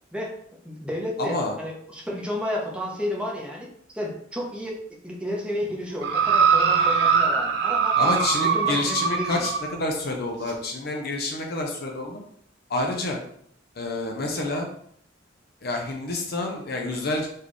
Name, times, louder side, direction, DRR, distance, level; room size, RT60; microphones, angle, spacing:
voice 1, 0.6-4.8 5.0-9.5, left 1 dB, 5° right, -2 dB, 0.9 m, -32 dB
voice 2, 1.2-1.5 7.9-12.2 12.7-13.2 13.8-14.7 15.6-17.3, left 2 dB, 55° left, 1 dB, 0.7 m, -28 dB
sound 1, 6.0-9.7 10.5-10.6, right 6 dB, 65° right, 0.7 m, -22 dB
4.5 x 3.5 x 3.1 m, 0.67 s
head